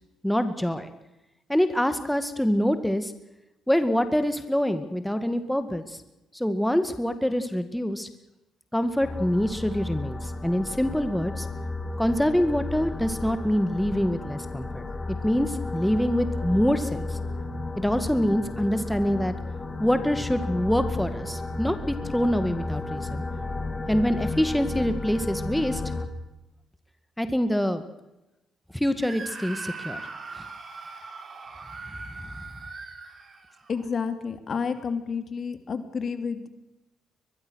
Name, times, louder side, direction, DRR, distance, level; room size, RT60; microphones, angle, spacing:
voice 1, 0.2-0.9 1.5-3.1 3.7-6.0 6.3-8.1 8.7-11.5 12.0-14.8 15.2-17.2 17.8-19.3 19.8-23.2 23.9-25.8 27.2-27.8 28.7-30.0 30.3-30.4, equal, 5° left, 9 dB, 2.0 m, -25 dB
sound 1, 9.0-26.1, left 2 dB, 30° left, 3.1 m, -33 dB
Screaming, 29.0-33.8, right 3 dB, 45° right, 5.8 m, -40 dB
voice 2, 33.7-36.5, left 5 dB, 50° left, 9 dB, 2.7 m, -30 dB
22.5 x 22.0 x 6.4 m, 0.96 s
supercardioid pair, 65°, 0 cm